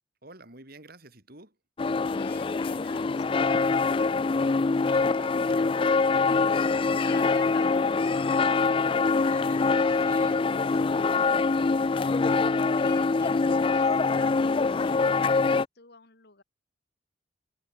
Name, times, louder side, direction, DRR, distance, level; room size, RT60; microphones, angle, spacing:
voice 1, 0.2-1.6 4.7-6.2 9.3-12.5, right 2 dB, 50° right, 5.4 m, -50 dB
sound 1, 1.8-15.7, left 4 dB, 25° left, 0.3 m, -24 dB
voice 2, 2.0-4.3 6.9-8.7 12.7-14.4 14.7-16.4, left 5 dB, 55° left, 2.3 m, -48 dB
head